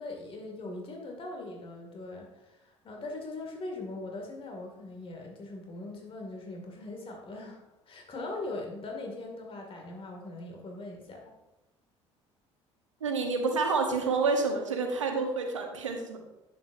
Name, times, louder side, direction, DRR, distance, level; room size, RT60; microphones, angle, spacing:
voice 1, 0.0-7.6 7.9-11.3, left 2 dB, 35° left, 1 dB, 2.2 m, -40 dB
voice 2, 13.0-16.2, right 4 dB, 85° right, 4 dB, 1.1 m, -28 dB
10.5 x 7.9 x 2.6 m, 0.98 s
figure-of-eight pair, 60°, 16 cm